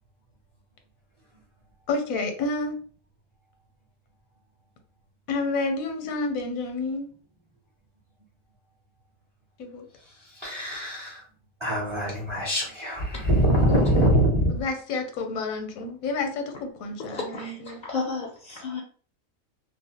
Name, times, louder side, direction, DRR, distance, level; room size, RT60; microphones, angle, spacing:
voice 1, 1.9-2.8 5.3-7.1 9.6-9.8 13.7-14.1 14.5-17.8, left 3 dB, 80° left, 6 dB, 1.0 m, -29 dB
voice 2, 10.3-11.2 11.6-14.6, equal, 35° right, -4 dB, 0.5 m, -23 dB
voice 3, 17.1-18.8, left 4 dB, 65° left, -1 dB, 0.4 m, -32 dB
2.4 x 2.0 x 2.8 m, 0.43 s
omnidirectional pair, 1.4 m